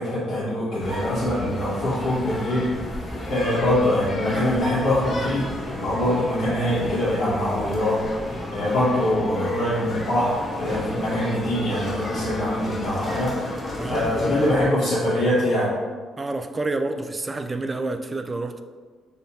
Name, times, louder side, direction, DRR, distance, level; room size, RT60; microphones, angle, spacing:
voice 1, 0.0-2.7 3.3-8.0 8.5-13.3 13.8-15.8, left 1 dB, 75° left, -11 dB, 1.4 m, -23 dB
sound 1, 0.8-14.6, left 1 dB, 40° left, 0.9 m, -32 dB
voice 2, 13.8-14.4 16.2-18.6, right 2 dB, 25° right, 8 dB, 0.3 m, -29 dB
3.3 x 2.8 x 4.0 m, 1.5 s
cardioid pair, 90°, 0 cm